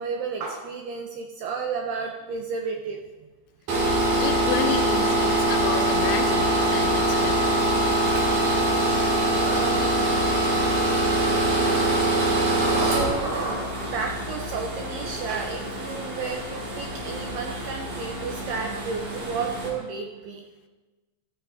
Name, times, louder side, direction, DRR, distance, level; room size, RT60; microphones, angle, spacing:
voice 1, 0.0-3.0 8.2-10.0 11.2-11.4 11.7-11.8 12.7-20.5, right 5 dB, 85° right, 2 dB, 2.2 m, -33 dB
sound 1, 3.7-19.7, right 1 dB, 45° right, 2.8 m, -24 dB
voice 2, 4.2-7.6, left 8 dB, 80° left, 5 dB, 3.0 m, -31 dB
14.5 x 14.0 x 2.7 m, 1.2 s
omnidirectional pair, 5.5 m